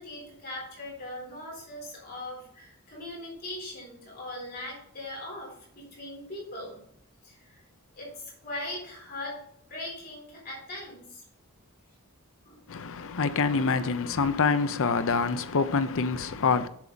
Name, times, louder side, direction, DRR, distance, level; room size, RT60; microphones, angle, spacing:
voice 1, 0.0-6.8 7.2-7.6 7.9-11.2 12.4-12.6, left 1 dB, 45° left, 3.9 m, -40 dB
voice 2, 12.7-16.7, left 4 dB, 60° left, 0.7 m, -26 dB
7.4 x 7.3 x 4.0 m
head